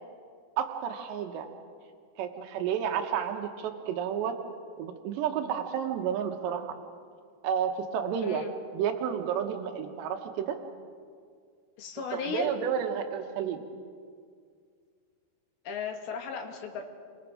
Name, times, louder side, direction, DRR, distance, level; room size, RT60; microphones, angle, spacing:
voice 1, 0.6-1.5 2.2-4.4 4.8-6.8 7.4-8.4 8.7-10.6 12.1-13.6, right 8 dB, 90° right, 5 dB, 3.4 m, -31 dB
voice 2, 11.8-12.5 15.7-16.8, left 6 dB, 65° left, 3 dB, 3.6 m, -35 dB
29.0 x 24.0 x 5.0 m, 2.1 s
omnidirectional pair, 4.8 m